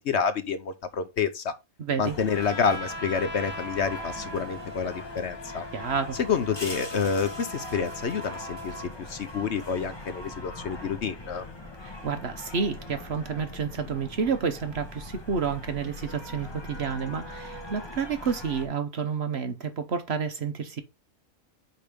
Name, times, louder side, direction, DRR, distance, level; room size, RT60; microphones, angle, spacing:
voice 1, 0.0-1.6 2.0-5.6 6.2-11.4, left 6 dB, 55° left, 1.0 m, -28 dB
voice 2, 1.8-2.2 5.7-6.2 11.8-20.8, right 6 dB, 50° right, 1.1 m, -30 dB
sound 1, 2.0-18.7, left 1 dB, 20° left, 1.2 m, -42 dB
Trumpet, 2.3-8.9, equal, 40° left, 1.9 m, -40 dB
5.2 x 4.8 x 5.0 m
omnidirectional pair, 1.5 m